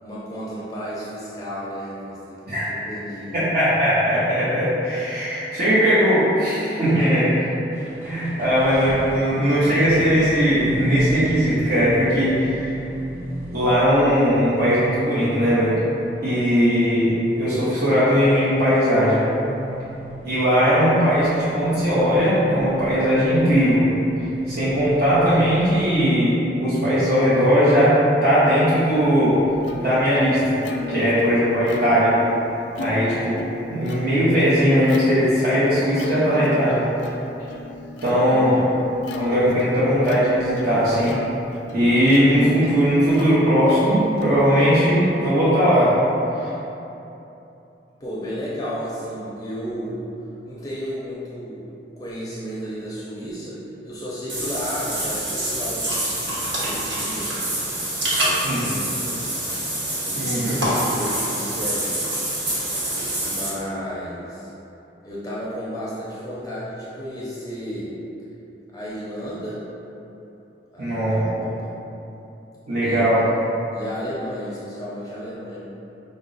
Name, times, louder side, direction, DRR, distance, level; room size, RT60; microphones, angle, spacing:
voice 1, 0.0-3.4 6.9-7.2 38.1-38.5 48.0-50.0 50.5-51.6 52.0-53.6 53.8-55.9 56.6-57.5 57.8-59.4 60.0-62.3 63.2-64.5 65.0-67.9 68.7-69.6 70.7-71.7 72.8-73.0 73.7-75.6, equal, 20° left, -8 dB, 0.5 m, -33 dB
voice 2, 2.5-2.8 3.3-7.4 7.9-12.8 13.5-15.8 16.2-19.3 20.2-23.8 24.5-29.4 29.7-30.6 30.9-32.2 32.8-33.4 33.7-36.8 38.0-38.6 39.2-41.1 41.7-45.9 46.4-46.5 58.4-58.6 60.2-60.6 70.8-71.3 72.7-73.2, equal, 55° right, -12 dB, 0.9 m, -19 dB
sound 1, 7.7-26.0, right 1 dB, 10° right, 0.7 m, -34 dB
Plucked string instrument, 28.7-45.5, left 3 dB, 80° left, 0.4 m, -36 dB
Water / Bathtub (filling or washing), 54.3-63.5, right 1 dB, 85° right, 1.1 m, -26 dB
5.2 x 2.0 x 3.8 m, 2.9 s
head